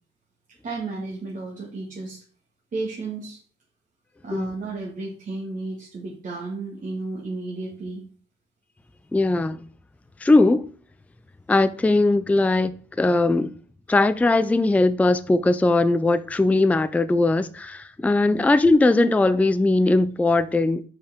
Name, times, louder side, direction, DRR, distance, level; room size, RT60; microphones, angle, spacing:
voice 1, 0.5-2.2 2.7-3.4 4.2-8.0 18.3-18.4, right 3 dB, 45° right, 1.9 m, -33 dB
voice 2, 9.1-9.6 10.2-10.7 11.5-13.5 13.9-20.8, left 2 dB, 5° left, 0.4 m, -20 dB
5.4 x 4.7 x 5.0 m
cardioid pair, 90°, 20 cm